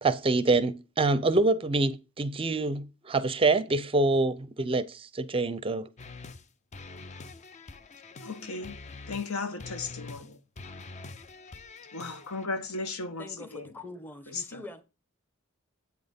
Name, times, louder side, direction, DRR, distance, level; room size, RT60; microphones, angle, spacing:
voice 1, 0.0-5.9, right 3 dB, 25° right, 0.5 m, -26 dB
sound 1, 6.0-6.5 6.7-9.3 9.6-10.3 10.6-12.5, left 3 dB, 35° left, 0.5 m, -45 dB
voice 2, 8.2-10.4 11.9-13.7 14.3-14.6, left 3 dB, 85° left, 1.1 m, -36 dB
voice 3, 13.2-14.8, left 2 dB, 10° left, 0.9 m, -44 dB
8.2 x 4.3 x 5.2 m
head